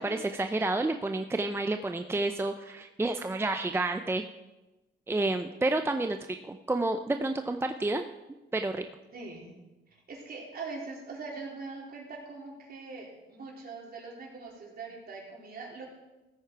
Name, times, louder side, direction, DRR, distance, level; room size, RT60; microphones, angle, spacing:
voice 1, 0.0-4.2 5.1-6.2 6.4-8.0 8.5-8.8, right 2 dB, 10° right, 7 dB, 0.5 m, -29 dB
voice 2, 9.1-9.5 10.1-16.0, right 4 dB, 50° right, -3 dB, 4.0 m, -42 dB
15.0 x 8.7 x 4.6 m, 1.1 s
cardioid pair, 90°, 20 cm